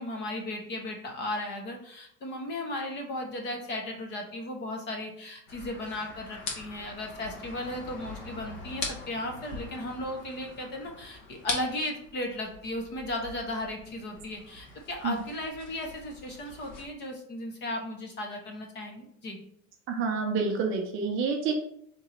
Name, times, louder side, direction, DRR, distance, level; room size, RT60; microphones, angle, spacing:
voice 1, 0.0-19.4, left 1 dB, 25° left, 2 dB, 0.6 m, -36 dB
sound 1, 5.5-16.9, left 3 dB, 50° left, 1.2 m, -42 dB
voice 2, 19.9-21.5, right 5 dB, 30° right, 2 dB, 0.5 m, -28 dB
3.7 x 3.0 x 4.3 m, 0.69 s
supercardioid pair, 155°, 43 cm